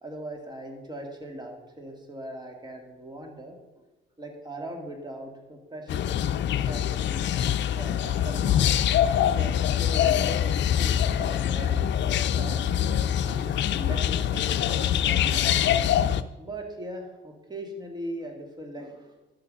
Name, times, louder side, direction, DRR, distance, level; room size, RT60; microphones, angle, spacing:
voice 1, 0.0-3.9 4.2-7.5 7.8-8.6 9.1-12.7 13.2-15.8 16.4-19.2, right 1 dB, 20° right, 2 dB, 2.4 m, -40 dB
sound 1, 5.9-16.2, left 10 dB, 65° left, 0.5 m, -24 dB
11.5 x 6.8 x 5.4 m, 1.1 s
cardioid pair, 90°, 20 cm